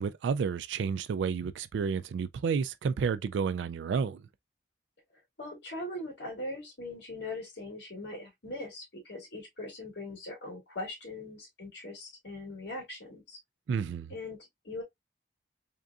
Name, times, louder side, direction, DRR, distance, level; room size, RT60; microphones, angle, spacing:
voice 1, 0.0-4.2 13.7-14.1, right 6 dB, 85° right, 0.3 m, -31 dB
voice 2, 5.4-13.4 14.1-14.8, left 2 dB, 75° left, 2.2 m, -41 dB
3.7 x 3.5 x 2.4 m
head